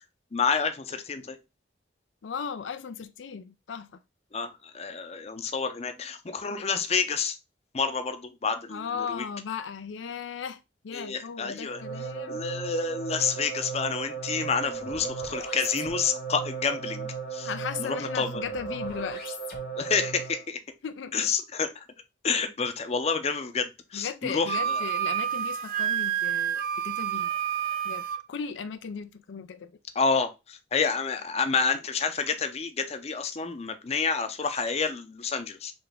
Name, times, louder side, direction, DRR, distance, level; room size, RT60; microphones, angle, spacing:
voice 1, 0.3-1.4 4.3-7.4 7.7-9.3 10.9-11.8 12.3-17.5 17.8-18.4 19.8-20.6 21.1-21.9 22.2-24.8 29.9-35.7, left 5 dB, 35° left, 0.6 m, -29 dB
voice 2, 2.2-3.9 8.7-12.4 14.8-14.9 17.4-19.4 20.8-21.3 23.9-27.3 27.8-29.8, left 6 dB, 90° left, 0.4 m, -36 dB
sound 1, 11.7-20.5, right 5 dB, 55° left, 1.1 m, -36 dB
Wind instrument woodwind instrument, 24.5-28.2, right 10 dB, 50° right, 0.4 m, -29 dB
4.0 x 3.3 x 3.4 m
head